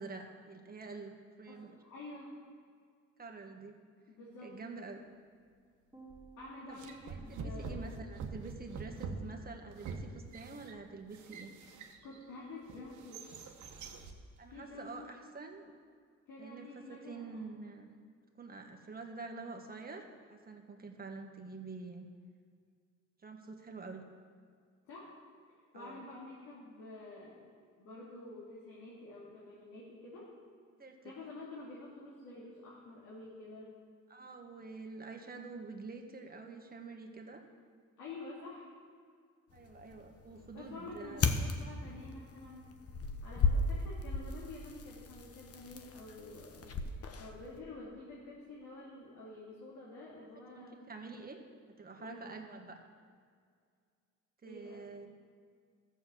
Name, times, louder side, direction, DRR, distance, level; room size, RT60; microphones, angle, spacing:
voice 1, 0.0-1.7 3.2-3.8 4.4-5.1 6.7-6.8 7.1-11.5 14.4-15.7 16.4-17.9 18.4-22.1 23.2-24.0 25.7-26.0 30.8-31.2 34.1-37.4 39.5-41.4 50.2-50.3 50.5-51.4 51.8-52.8 54.4-55.1, right 3 dB, 30° right, 3 dB, 1.6 m, -47 dB
voice 2, 1.5-2.4 4.1-4.5 6.4-7.9 12.0-13.3 14.5-15.1 16.3-17.5 24.8-25.2 25.7-27.4 27.8-30.3 31.0-33.7 38.0-38.7 40.5-42.7 43.2-46.7 47.1-50.8 52.0-52.3 54.4-54.8, left 2 dB, 85° left, -6 dB, 2.7 m, -49 dB
sound 1, 5.9-8.4, right 4 dB, 15° right, 2.3 m, -58 dB
sound 2, 6.1-6.3 6.8-12.2 12.7-14.2, right 4 dB, 70° right, 1.2 m, -45 dB
sound 3, 39.5-47.6, left 4 dB, 50° left, 1.1 m, -36 dB
13.0 x 7.0 x 7.8 m, 2.1 s
cardioid pair, 90°, 30 cm